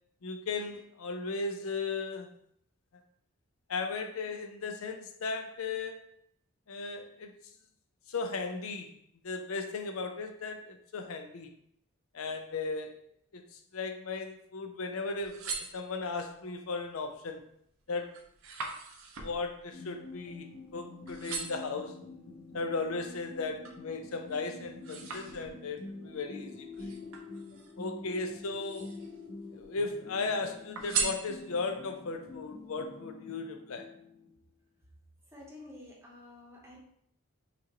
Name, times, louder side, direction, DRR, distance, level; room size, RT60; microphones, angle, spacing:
voice 1, 0.2-2.3 3.7-6.0 6.7-7.3 8.1-8.9 9.2-11.5 12.1-13.0 13.3-13.4 13.7-17.4 17.9-18.2 19.2-22.0 22.5-26.9 27.8-28.9 29.5-33.9, left 4 dB, 85° left, 6 dB, 0.6 m, -36 dB
sound 1, 15.0-16.3 16.9-17.3 17.7-20.8 21.1-21.8 22.4-23.9 24.3-25.8 26.7-27.9 28.4-29.2 29.5-30.3 30.7-31.8 32.3-32.4, right 5 dB, 80° right, 0.7 m, -39 dB
sound 2, 19.7-34.4, left 3 dB, 50° left, 0.7 m, -47 dB
voice 2, 35.3-36.8, left 2 dB, 10° right, -3 dB, 0.8 m, -50 dB
5.8 x 2.5 x 2.9 m, 0.69 s
head